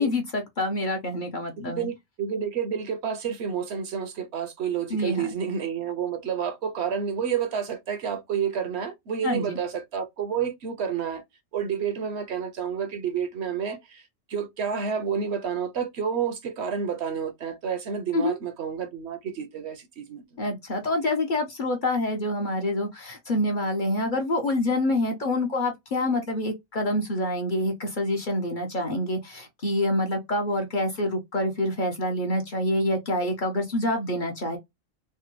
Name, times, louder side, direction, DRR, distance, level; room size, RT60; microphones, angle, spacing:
voice 1, 0.0-1.9 4.9-5.2 9.2-9.6 18.1-18.4 20.4-34.6, left 1 dB, 45° left, 0.7 m, -26 dB
voice 2, 1.7-11.2 11.5-20.3, right 7 dB, 65° right, 0.8 m, -30 dB
3.3 x 2.1 x 2.9 m
omnidirectional pair, 1.3 m